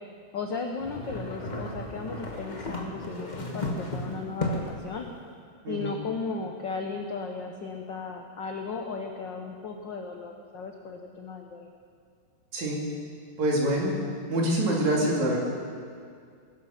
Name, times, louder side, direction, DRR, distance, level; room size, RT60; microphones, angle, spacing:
voice 1, 0.3-5.1 5.7-11.7, left 4 dB, 85° left, 2 dB, 1.0 m, -35 dB
sound 1, 0.8-4.9, left 1 dB, 65° left, 0.4 m, -34 dB
voice 2, 13.4-14.0 14.3-15.4, right 1 dB, 65° right, -2 dB, 3.9 m, -25 dB
20.5 x 11.5 x 5.8 m, 2.2 s
omnidirectional pair, 3.5 m